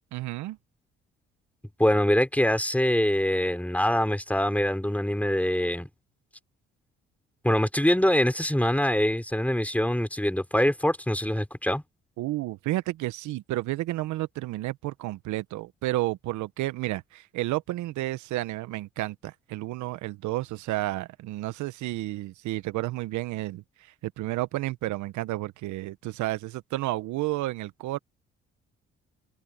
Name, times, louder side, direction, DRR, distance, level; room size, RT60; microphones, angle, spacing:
voice 1, 0.1-0.6 12.2-28.0, right 17 dB, 75° right, 1.3 m, -31 dB
voice 2, 1.8-5.9 7.4-11.8, left 1 dB, 5° left, 5.2 m, -24 dB
hypercardioid pair, 50°, 30 cm